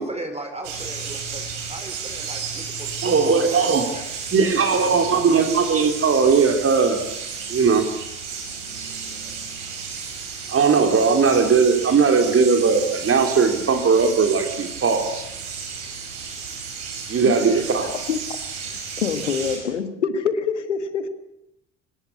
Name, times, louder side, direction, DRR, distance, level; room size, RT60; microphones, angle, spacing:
voice 1, 0.0-4.1, right 2 dB, 20° right, 6 dB, 4.2 m, -37 dB
sound 1, 0.6-19.6, right 5 dB, 75° right, 6.1 m, -33 dB
voice 2, 3.0-3.9 4.3-7.0 7.5-7.9 10.5-15.2 17.1-17.9, right 5 dB, 40° right, 6 dB, 3.3 m, -18 dB
voice 3, 17.3-18.2 18.6-21.1, left 6 dB, 85° left, 11 dB, 1.7 m, -26 dB
24.5 x 20.0 x 8.5 m, 0.84 s
hypercardioid pair, 55°, 35 cm